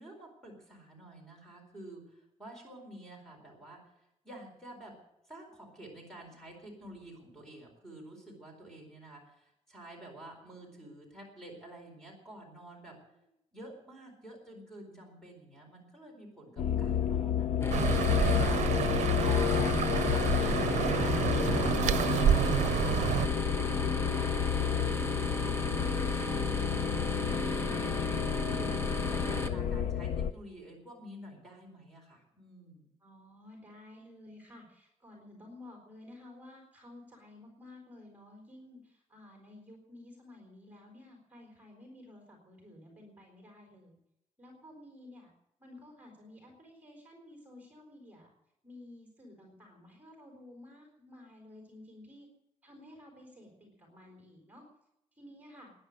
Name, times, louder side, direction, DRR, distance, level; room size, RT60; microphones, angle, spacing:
voice 1, 0.0-3.8 4.2-4.9 5.3-13.0 13.5-19.7 20.1-24.6 24.8-27.8 28.5-32.9, right 1 dB, 5° left, 1 dB, 4.3 m, -50 dB
sound 1, 16.6-30.3, left 9 dB, 90° left, 0.7 m, -31 dB
sound 2, 17.6-29.5, left 1 dB, 20° left, 1.2 m, -35 dB
sound 3, 17.7-23.3, right 10 dB, 90° right, 0.6 m, -29 dB
voice 2, 33.0-44.0 44.4-45.3 45.6-48.3 48.6-52.3 52.6-54.6 55.1-55.7, left 1 dB, 15° right, 0 dB, 4.0 m, -53 dB
19.5 x 10.5 x 6.5 m, 0.85 s
wide cardioid pair, 180°, 12 cm